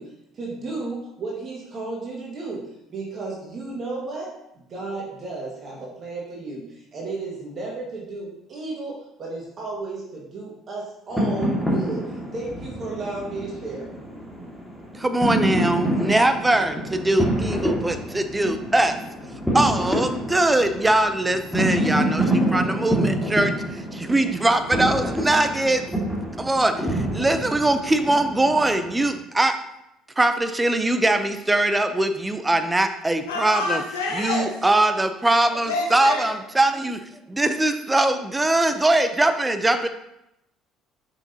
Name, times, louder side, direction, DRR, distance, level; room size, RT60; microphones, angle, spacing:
voice 1, 0.0-13.9, right 3 dB, 45° right, -3 dB, 1.8 m, -33 dB
sound 1, 11.1-29.1, right 1 dB, 5° left, 2.2 m, -27 dB
voice 2, 15.0-19.0 19.5-25.8 26.4-29.6 30.2-33.8 34.1-37.0 37.3-39.9, right 2 dB, 15° right, 9 dB, 0.7 m, -21 dB
voice 3, 33.3-34.5 35.6-36.3, left 3 dB, 85° left, -1 dB, 0.8 m, -27 dB
6.8 x 6.0 x 2.9 m, 0.83 s
hypercardioid pair, 60°, 0 cm